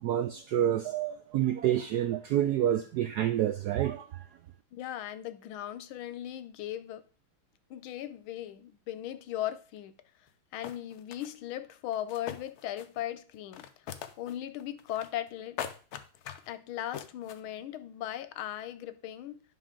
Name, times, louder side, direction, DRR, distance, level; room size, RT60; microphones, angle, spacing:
voice 1, 0.0-4.2, right 11 dB, 80° right, 0.9 m, -28 dB
voice 2, 4.7-7.0 7.7-9.9 10.5-13.7 14.2-15.7 16.5-19.4, left 12 dB, 90° left, 1.5 m, -38 dB
sound 1, 10.3-10.4 10.6-11.3 11.9-13.0 13.3-14.3 14.6-15.3 15.6-16.5 16.9-17.4, left 9 dB, 65° left, 1.0 m, -41 dB
10.0 x 5.7 x 3.7 m
omnidirectional pair, 2.2 m